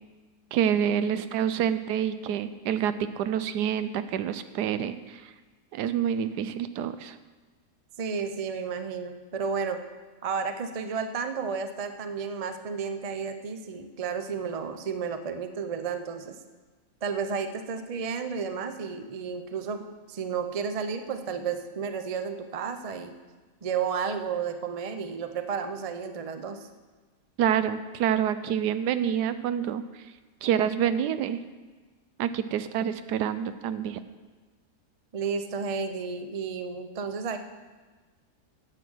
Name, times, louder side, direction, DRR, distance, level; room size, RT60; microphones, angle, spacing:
voice 1, 0.5-5.3 5.7-7.2 27.4-30.0 30.4-31.4 32.2-34.0, right 9 dB, 85° right, 12 dB, 1.2 m, -27 dB
voice 2, 8.0-9.8 10.2-16.4 17.0-19.8 20.1-23.1 23.6-26.7 35.1-37.4, right 6 dB, 55° right, 8 dB, 0.3 m, -32 dB
10.5 x 7.8 x 6.3 m, 1.3 s
omnidirectional pair, 1.7 m